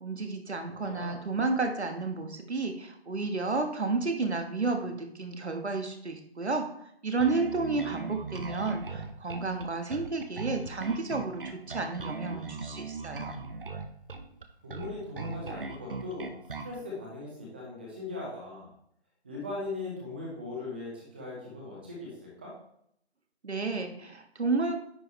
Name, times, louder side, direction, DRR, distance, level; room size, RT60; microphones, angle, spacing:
voice 1, 0.0-6.7 7.0-13.3 23.4-24.8, right 3 dB, 75° right, 5 dB, 1.4 m, -31 dB
voice 2, 0.6-1.2 14.6-16.3 16.6-18.7 19.2-22.5, left 2 dB, 10° right, -3 dB, 0.7 m, -39 dB
Bass guitar, 7.2-16.8, right 4 dB, 55° right, 0.9 m, -39 dB
9.6 x 5.1 x 3.2 m, 0.71 s
figure-of-eight pair, 155°, 33 cm